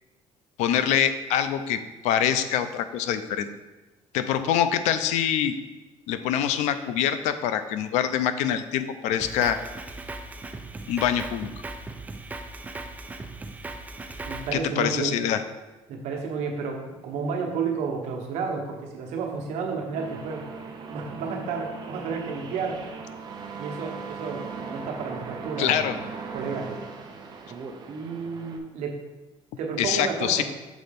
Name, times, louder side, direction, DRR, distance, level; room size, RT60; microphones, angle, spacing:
voice 1, 0.6-3.5 4.1-5.5 6.1-9.6 10.9-11.5 14.5-15.4 25.6-26.0 29.8-30.4, left 9 dB, 90° left, 11 dB, 0.5 m, -25 dB
Drum kit, 9.2-14.5, right 2 dB, 15° right, 0.4 m, -38 dB
voice 2, 14.3-15.1 15.9-20.5 20.9-22.8 23.6-25.9 26.3-26.7 28.7-29.0 29.6-30.4, right 5 dB, 75° right, 2 dB, 1.1 m, -31 dB
sound 1, 19.9-28.6, right 4 dB, 40° right, 0.7 m, -38 dB
6.2 x 4.2 x 5.2 m, 1.1 s
cardioid pair, 150°, 11 cm